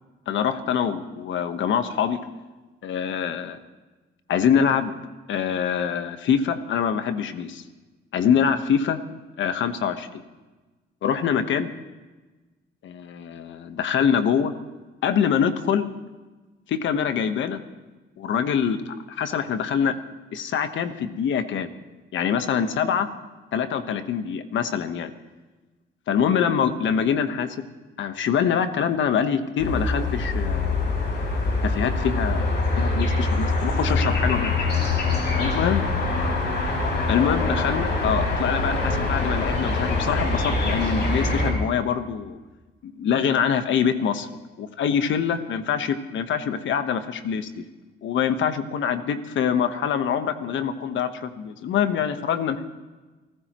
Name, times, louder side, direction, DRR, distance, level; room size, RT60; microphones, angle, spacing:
voice 1, 0.3-2.2 2.8-3.6 4.3-4.9 5.3-7.6 8.1-9.0 9.4-10.2 11.0-11.7 12.8-14.5 15.0-15.9 16.7-17.6 18.2-20.0 20.3-21.7 22.1-23.1 23.5-25.1 26.1-27.6 28.0-31.0 31.6-34.5 35.4-35.8 37.1-42.4 42.8-44.3 44.6-47.6 48.0-52.6, left 7 dB, 70° left, 9 dB, 1.3 m, -24 dB
sound 1, 29.6-41.5, left 2 dB, 55° left, 5.1 m, -24 dB
30.0 x 15.0 x 3.1 m, 1.2 s
cardioid pair, 90°, 20 cm